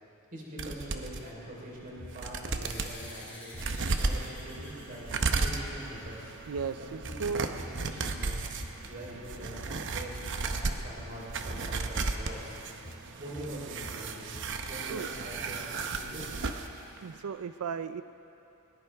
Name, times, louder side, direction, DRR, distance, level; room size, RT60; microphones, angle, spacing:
voice 1, 0.3-3.6 4.0-5.1 5.4-6.2 7.8-8.4 8.8-12.6 13.2-14.3 14.7-16.2, right 1 dB, 40° right, -4 dB, 3.8 m, -43 dB
sound 1, 0.6-1.2 1.8-1.9 2.1-2.9 3.5-16.7 17.0-17.1, right 3 dB, 60° right, 0.8 m, -35 dB
sound 2, 1.9-2.1 2.5-2.7 3.0-9.2 9.5-14.4, left 1 dB, 35° left, 2.2 m, -46 dB
sound 3, 2.6-7.5, left 1 dB, 10° left, 4.3 m, -50 dB
voice 2, 6.5-7.5 14.9-15.1 16.9-18.0, right 5 dB, 85° right, 12 dB, 0.4 m, -35 dB
20.0 x 19.0 x 3.5 m, 3.0 s
head